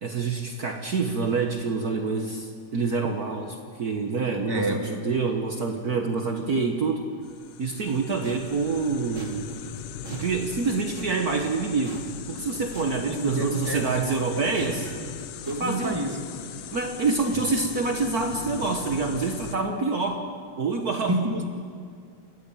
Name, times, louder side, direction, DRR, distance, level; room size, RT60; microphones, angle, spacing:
voice 1, 0.0-7.1 7.6-9.6 10.1-14.9 15.6-16.0 16.7-20.3 20.6-21.1, right 4 dB, 70° right, 3 dB, 0.8 m, -27 dB
voice 2, 4.5-4.9 13.1-13.8 14.3-15.1 15.5-16.2 21.1-21.5, right 1 dB, 10° right, 2 dB, 1.7 m, -29 dB
sound 1, 7.2-19.6, left 9 dB, 85° left, 2.6 m, -40 dB
sound 2, 7.7-13.4 13.6-15.8, right 4 dB, 35° right, 1.5 m, -41 dB
29.5 x 14.0 x 9.1 m, 2.1 s
omnidirectional pair, 3.6 m